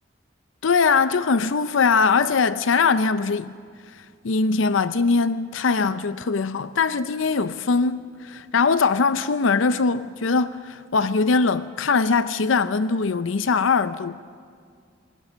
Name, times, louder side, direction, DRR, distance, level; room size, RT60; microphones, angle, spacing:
voice 1, 0.6-3.5 3.9-14.2, left 4 dB, 85° left, 0.6 m, -21 dB
27.0 x 19.5 x 7.4 m
head